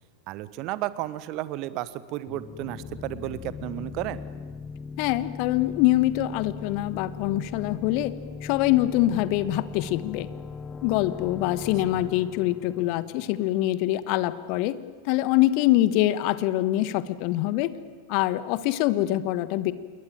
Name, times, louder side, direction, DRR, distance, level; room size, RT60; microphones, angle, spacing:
voice 1, 0.3-4.2 11.5-12.1, right 14 dB, 40° right, 16 dB, 1.2 m, -33 dB
sound 1, 2.3-13.8, left 5 dB, 25° left, 0.9 m, -40 dB
voice 2, 5.0-8.1 8.4-10.3 10.8-14.8 15.0-17.7 18.1-19.7, left 15 dB, 45° left, 15 dB, 1.2 m, -24 dB
28.0 x 22.0 x 9.0 m, 1.4 s
figure-of-eight pair, 90°, 0 cm